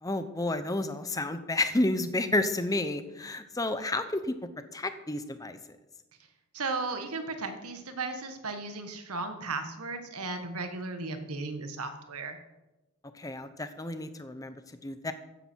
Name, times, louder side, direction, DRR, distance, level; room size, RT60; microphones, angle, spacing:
voice 1, 0.0-4.3 4.7-5.6 13.1-15.1, left 2 dB, 15° left, 10 dB, 0.7 m, -31 dB
voice 2, 6.5-12.4, right 3 dB, 85° right, 7 dB, 1.6 m, -35 dB
14.5 x 10.0 x 4.6 m, 1.0 s
head